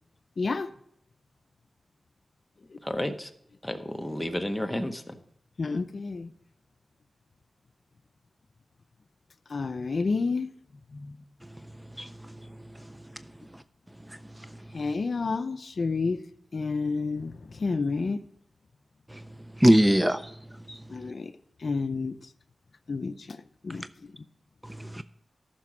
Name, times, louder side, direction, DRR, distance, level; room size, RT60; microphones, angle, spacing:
voice 1, 0.4-0.7 5.6-6.3 9.5-10.5 10.9-11.2 14.7-16.2 16.5-18.2 20.9-21.3 21.6-22.1 22.9-23.4 23.6-23.8, left 4 dB, 55° left, 0.5 m, -29 dB
voice 2, 2.8-3.3 3.6-5.1, left 1 dB, 10° left, 0.9 m, -31 dB
voice 3, 19.6-20.3 20.7-20.8 24.6-25.0, equal, 10° right, 0.4 m, -22 dB
14.0 x 6.0 x 4.9 m
wide cardioid pair, 90°, 0 cm